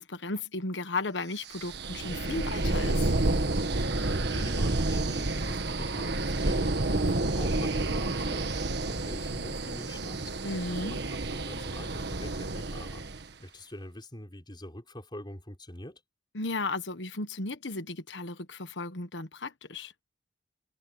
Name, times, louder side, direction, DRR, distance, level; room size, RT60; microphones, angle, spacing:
voice 1, 0.0-3.1 10.4-11.0 16.3-19.9, left 3 dB, 75° left, 1.4 m, -35 dB
sound 1, 1.5-13.3, right 2 dB, 65° right, 1.5 m, -30 dB
voice 2, 3.7-13.1 13.4-16.0, left 1 dB, 25° left, 5.3 m, -45 dB
head